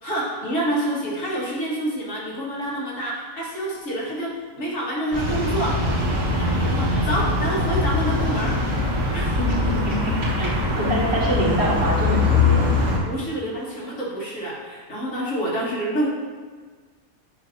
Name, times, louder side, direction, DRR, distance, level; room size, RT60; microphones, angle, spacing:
voice 1, 0.0-6.1 6.4-8.6 8.8-9.4 13.0-16.1, right 1 dB, 60° left, -6 dB, 1.8 m, -28 dB
sound 1, 5.1-13.0, left 2 dB, 85° right, 2.0 m, -22 dB
voice 2, 9.4-12.7, equal, 50° right, -4 dB, 1.3 m, -25 dB
8.0 x 2.7 x 5.6 m, 1.5 s
omnidirectional pair, 1.5 m